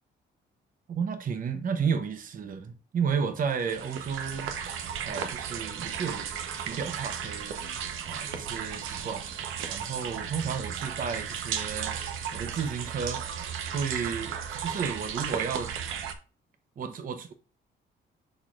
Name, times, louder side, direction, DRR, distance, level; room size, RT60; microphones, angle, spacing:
voice 1, 0.9-4.5 5.0-6.3 6.6-7.6 8.0-9.3 9.7-12.0 12.3-13.2 13.7-15.7 16.8-17.3, right 6 dB, 45° right, 0.8 m, -32 dB
sound 1, 3.5-16.1, right 8 dB, 90° right, 0.9 m, -35 dB
11.0 x 4.2 x 2.4 m
cardioid pair, 90°, 20 cm